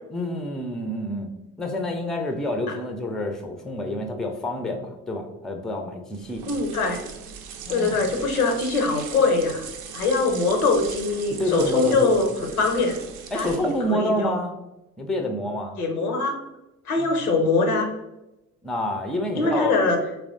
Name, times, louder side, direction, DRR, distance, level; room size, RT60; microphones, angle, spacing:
voice 1, 0.1-1.3 1.6-6.4 7.7-8.0 11.3-12.1 13.3-14.5 15.0-15.8 17.0-17.1 18.6-19.7, left 1 dB, ahead, 5 dB, 0.3 m, -28 dB
sound 1, 6.1-13.9, right 7 dB, 65° right, 0.5 m, -39 dB
voice 2, 6.5-7.0 7.7-9.7 9.9-13.0 13.3-14.3 15.8-16.4 16.9-17.9 19.4-20.0, left 3 dB, 85° left, 4 dB, 0.6 m, -22 dB
3.4 x 3.0 x 2.5 m, 0.93 s
figure-of-eight pair, 45°, 43 cm